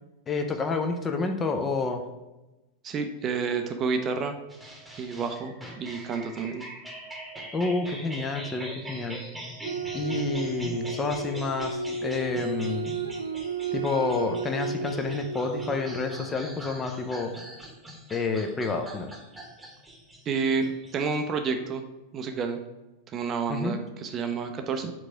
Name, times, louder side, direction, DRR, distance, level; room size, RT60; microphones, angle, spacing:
voice 1, 0.3-2.0 7.5-9.2 9.9-12.9 13.7-17.3 18.1-19.1 23.5-23.8, left 3 dB, 20° left, 4 dB, 0.7 m, -29 dB
voice 2, 2.8-4.4 5.0-6.6 20.3-20.7 20.9-21.8 22.1-22.6 23.1-24.9, right 5 dB, 30° right, 6 dB, 0.6 m, -29 dB
sound 1, 4.5-21.4, equal, 5° right, 1.3 m, -43 dB
sound 2, 9.6-17.2, right 3 dB, 70° right, 0.4 m, -33 dB
4.7 x 3.9 x 5.7 m, 1.0 s
figure-of-eight pair, 90°, 0 cm